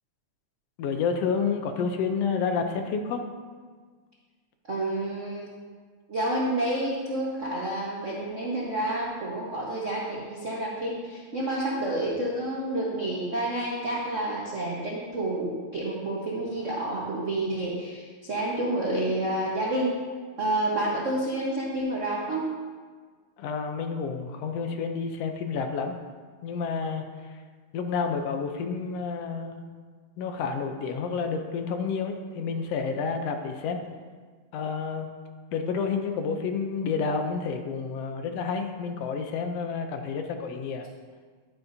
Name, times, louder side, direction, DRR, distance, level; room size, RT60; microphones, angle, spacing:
voice 1, 0.8-3.2 23.4-25.9 26.4-27.0 27.7-29.6 30.2-33.8 34.5-35.1 35.5-40.9, left 5 dB, 75° left, 6 dB, 1.6 m, -29 dB
voice 2, 4.7-5.5 6.1-19.9 20.4-22.5, right 1 dB, 90° right, -5 dB, 0.6 m, -29 dB
11.5 x 9.4 x 2.7 m, 1.5 s
omnidirectional pair, 3.3 m